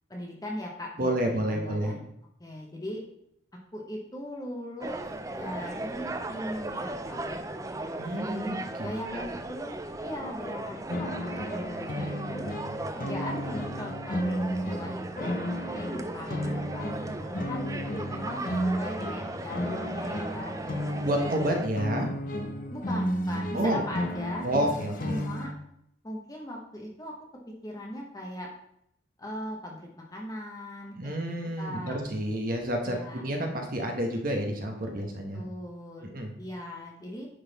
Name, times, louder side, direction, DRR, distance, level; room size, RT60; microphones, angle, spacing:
voice 1, 0.1-2.0 2.4-3.0 3.7-7.3 8.1-12.5 13.0-16.9 17.2-17.7 18.1-20.6 22.7-24.5 25.0-25.5 26.0-27.1 27.6-28.5 29.2-30.9 31.2-32.0 32.9-33.3 35.3-36.1 36.4-37.3, left 1 dB, 20° left, -1 dB, 0.9 m, -39 dB
voice 2, 1.0-2.0 8.0-9.3 21.0-22.1 23.5-23.8 24.4-25.2 30.9-35.4 36.0-36.3, right 1 dB, 45° right, 3 dB, 1.0 m, -29 dB
sound 1, 4.8-21.7, right 2 dB, 15° right, 0.4 m, -37 dB
sound 2, 10.9-25.5, equal, 45° left, 0.7 m, -33 dB
9.9 x 3.9 x 4.0 m, 0.74 s
head